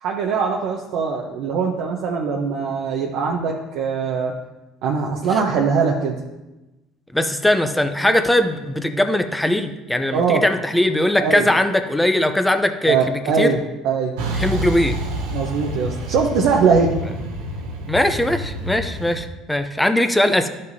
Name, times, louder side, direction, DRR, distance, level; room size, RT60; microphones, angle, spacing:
voice 1, 0.0-4.3 4.8-6.1 10.1-10.4 11.2-11.5 12.9-14.1 15.3-16.9, right 5 dB, 70° right, -1 dB, 0.8 m, -21 dB
voice 2, 7.1-13.5 14.3-15.0 17.9-20.5, left 1 dB, 5° left, 7 dB, 0.6 m, -20 dB
Truck, 14.2-19.2, equal, 90° right, 1.2 m, -28 dB
11.5 x 5.3 x 2.7 m, 1.0 s
supercardioid pair, 85°, 0 cm